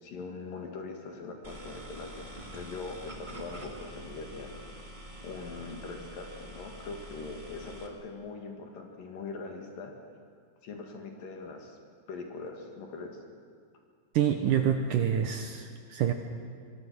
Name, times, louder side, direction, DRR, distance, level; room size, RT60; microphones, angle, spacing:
voice 1, 0.0-4.6 5.2-9.9 10.6-11.8 12.1-13.2, left 4 dB, 60° left, 2 dB, 3.7 m, -41 dB
sound 1, 1.4-7.9, equal, 35° right, 0.7 m, -46 dB
voice 2, 14.1-16.1, right 9 dB, 70° right, 6 dB, 2.1 m, -27 dB
23.5 x 23.0 x 6.3 m, 2.1 s
omnidirectional pair, 4.6 m